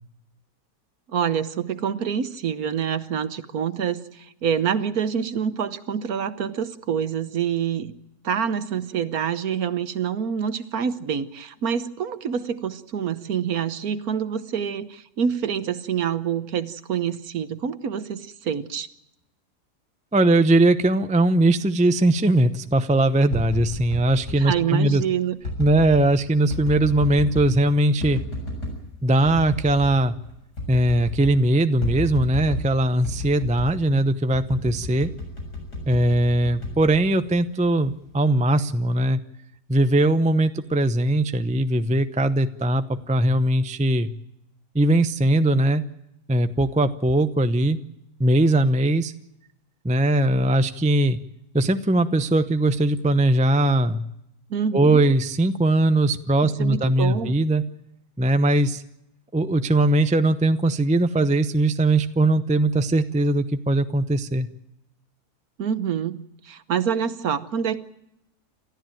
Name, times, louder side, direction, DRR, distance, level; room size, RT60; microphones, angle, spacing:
voice 1, 1.1-7.9 8.2-18.9 24.4-25.4 54.5-55.0 56.4-57.3 65.6-67.8, right 8 dB, 65° right, 13 dB, 1.5 m, -26 dB
voice 2, 20.1-25.0 25.6-28.2 29.0-30.2 30.7-35.1 35.9-39.2 39.7-44.1 44.7-45.8 46.3-47.8 48.2-49.1 49.8-51.2 51.5-54.0 54.7-57.6 58.2-58.8 59.3-64.5, right 1 dB, 10° right, 10 dB, 0.5 m, -20 dB
sound 1, 23.1-24.4 25.4-26.1 26.5-27.6 28.0-28.8 29.2-30.0 30.2-30.3 30.6-31.4 31.8-32.7 33.0-33.8 34.3-37.4 37.9-38.3, left 1 dB, 85° left, 7.9 m, -32 dB
29.0 x 14.0 x 9.2 m, 0.82 s
omnidirectional pair, 1.7 m